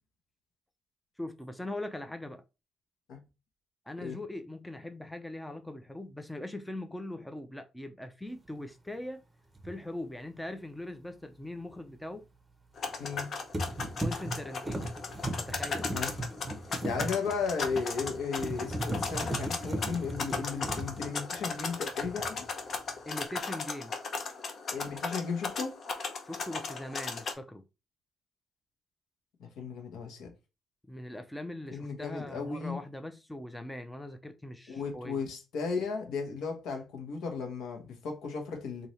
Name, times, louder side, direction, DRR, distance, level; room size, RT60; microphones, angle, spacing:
voice 1, 1.2-2.4 3.9-9.2 9.6-12.2 14.0-14.9 15.4-15.9 23.0-23.9 26.2-27.6 30.9-35.2, left 1 dB, 5° left, 0.6 m, -41 dB
sound 1, 9.6-9.7 12.9-13.2 13.5-21.7 22.0-22.5, right 1 dB, 15° right, 0.9 m, -37 dB
sound 2, 12.8-27.3, left 4 dB, 55° left, 0.8 m, -37 dB
voice 2, 13.0-13.3 15.9-16.1 16.8-22.4 24.7-25.8 29.4-30.3 31.7-32.8 34.7-38.9, left 5 dB, 80° left, 1.2 m, -35 dB
3.1 x 2.7 x 4.1 m
cardioid pair, 90°, 0 cm